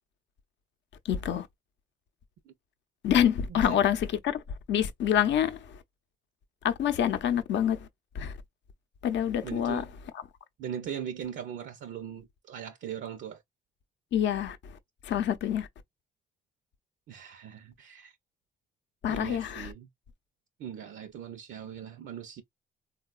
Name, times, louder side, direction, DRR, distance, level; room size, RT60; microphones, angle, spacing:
voice 1, 1.0-1.5 3.0-4.4 4.7-5.8 6.6-7.9 8.1-8.3 9.0-9.8 14.1-14.7 15.0-15.7 19.0-19.7, left 9 dB, 65° left, 0.6 m, -27 dB
voice 2, 3.5-3.8 9.4-9.9 10.6-13.4 17.1-18.2 19.1-19.9 20.6-22.4, right 9 dB, 70° right, 0.6 m, -40 dB
3.7 x 2.2 x 2.3 m
cardioid pair, 90°, 20 cm